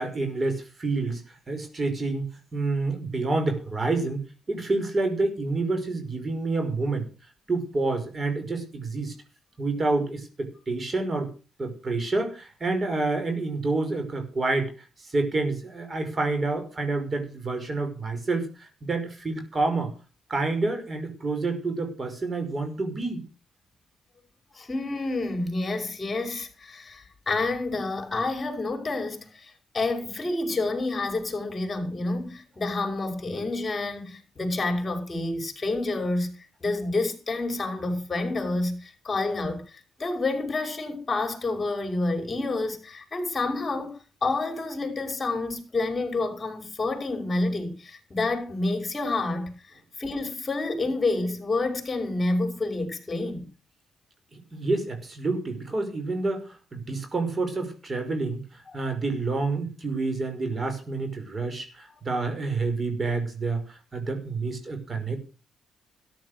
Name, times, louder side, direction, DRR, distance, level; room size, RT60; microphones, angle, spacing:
voice 1, 0.0-2.3 2.5-7.1 7.5-9.1 9.6-11.3 11.6-14.7 15.0-19.9 20.3-23.2 54.3-65.2, right 3 dB, 35° right, 5.7 m, -28 dB
voice 2, 24.5-49.5 50.0-53.5, left 2 dB, 25° left, 6.0 m, -29 dB
14.0 x 11.0 x 6.6 m
cardioid pair, 90°, 0 cm